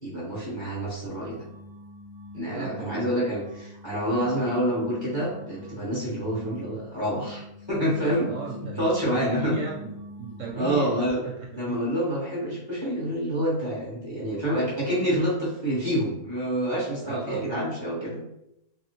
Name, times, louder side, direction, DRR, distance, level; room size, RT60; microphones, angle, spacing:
voice 1, 0.0-1.4 2.3-7.4 7.7-8.3 8.7-9.6 10.5-11.2 11.5-18.2, equal, 20° left, -7 dB, 1.0 m, -27 dB
sound 1, 1.1-10.8, left 1 dB, 65° left, 1.1 m, -44 dB
voice 2, 2.4-3.1 8.2-9.9 10.2-10.9 11.2-11.8 17.0-17.4, right 3 dB, 70° right, -2 dB, 0.8 m, -35 dB
3.0 x 2.6 x 3.0 m, 0.83 s
omnidirectional pair, 1.6 m